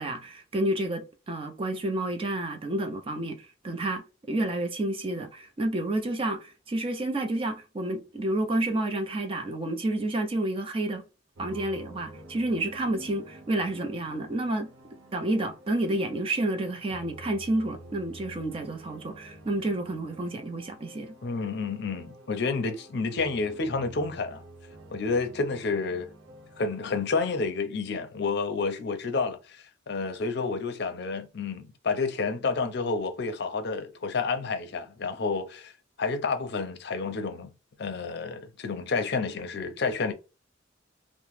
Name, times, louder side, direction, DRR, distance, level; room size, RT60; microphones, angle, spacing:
voice 1, 0.0-11.1 11.4-14.7 15.1-21.1, right 1 dB, 30° right, 0.5 m, -30 dB
sound 1, 11.3-26.8, right 1 dB, 85° right, 0.7 m, -49 dB
voice 2, 21.2-24.4 24.9-26.1 26.6-29.6 29.9-35.7 36.0-37.5 37.8-40.1, left 4 dB, 60° left, 0.5 m, -30 dB
2.9 x 2.0 x 3.2 m
head